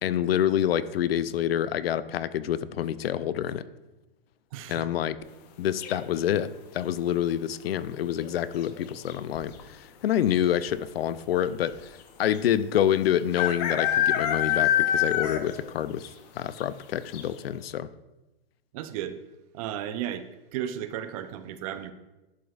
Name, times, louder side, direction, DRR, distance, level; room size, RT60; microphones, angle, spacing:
voice 1, 0.0-3.6 4.7-5.2 5.6-16.1 16.3-17.9, left 10 dB, 80° left, 16 dB, 0.5 m, -27 dB
voice 2, 4.5-4.9 18.7-19.2 19.5-21.9, right 10 dB, 40° right, 11 dB, 0.5 m, -34 dB
sound 1, 5.8-6.3 8.1-8.5 8.7-8.8 9.1-9.6 10.4-10.5 10.7-10.8 12.3-12.4 13.3-15.6 16.0-16.1 16.6-16.7 17.1-17.2, left 10 dB, 45° left, 0.7 m, -25 dB
11.0 x 5.0 x 2.4 m, 1.0 s
hypercardioid pair, 135°, 29 cm